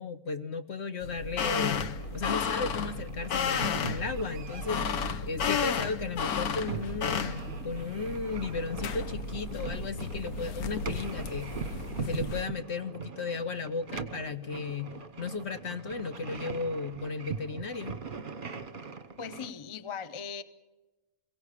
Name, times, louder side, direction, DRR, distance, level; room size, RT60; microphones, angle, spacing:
voice 1, 0.0-4.8 5.2-11.5 12.0-18.0, left 4 dB, 50° left, 9 dB, 1.0 m, -35 dB
sound 1, 1.0-12.4, left 6 dB, 70° left, 1.4 m, -33 dB
sound 2, 1.9-19.5, right 6 dB, 35° right, 1.2 m, -41 dB
voice 2, 19.2-20.4, left 6 dB, 25° left, 12 dB, 0.7 m, -39 dB
22.5 x 17.0 x 8.4 m, 1.1 s
omnidirectional pair, 1.7 m